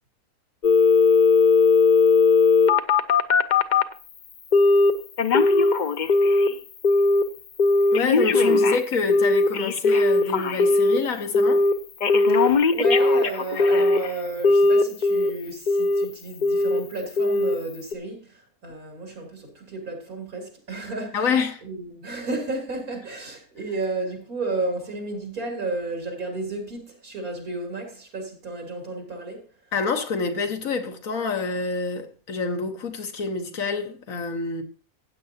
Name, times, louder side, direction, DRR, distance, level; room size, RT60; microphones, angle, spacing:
Telephone, 0.6-3.9 4.5-4.9 5.2-6.5 6.8-7.2 7.6-11.0 11.3-11.7 12.0-14.1 14.4-15.3 15.7-16.1 16.4-16.8 17.2-17.6 17.9-18.0, left 3 dB, 55° left, 0.5 m, -18 dB
voice 1, 7.9-11.7 21.1-21.6 29.7-34.6, left 4 dB, 70° left, 1.6 m, -27 dB
voice 2, 12.3-18.4 18.6-21.3 21.6-29.4, right 2 dB, 80° right, 3.7 m, -32 dB
15.5 x 8.7 x 2.8 m
omnidirectional pair, 1.5 m